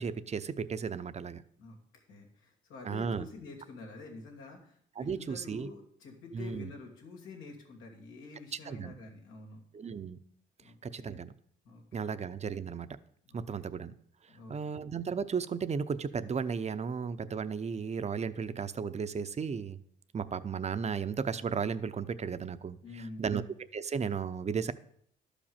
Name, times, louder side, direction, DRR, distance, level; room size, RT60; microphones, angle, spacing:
voice 1, 0.0-1.4 2.8-3.3 5.0-5.7 6.3-6.7 8.7-8.9 9.7-10.2 10.8-11.3 11.9-12.9 13.3-13.9 14.5-19.8 20.1-22.8 23.2-23.4 23.7-24.7, right 6 dB, 35° right, 12 dB, 0.7 m, -34 dB
voice 2, 1.6-9.6 10.6-11.3 11.6-12.1 13.2-13.6 14.3-14.7 22.8-23.4, left 3 dB, 90° left, 2 dB, 2.6 m, -48 dB
12.0 x 5.1 x 7.2 m, 0.64 s
cardioid pair, 90°, 20 cm